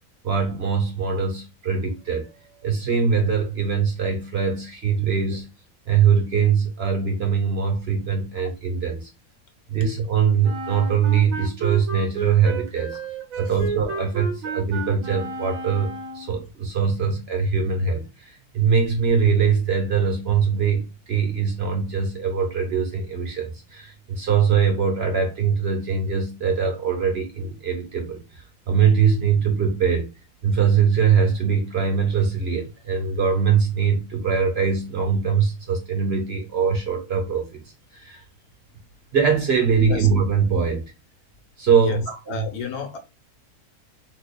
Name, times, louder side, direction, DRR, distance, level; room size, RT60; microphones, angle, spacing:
voice 1, 0.2-2.3 2.6-5.5 5.9-9.1 9.7-13.0 13.4-30.1 30.4-37.6 37.9-38.2 39.1-40.8 41.6-42.5, right 6 dB, 45° right, 1.1 m, -22 dB
Wind instrument woodwind instrument, 10.4-16.4, right 3 dB, 65° right, 1.2 m, -32 dB
voice 2, 42.3-43.0, left 6 dB, 75° left, 1.4 m, -31 dB
4.0 x 2.9 x 2.3 m
omnidirectional pair, 1.6 m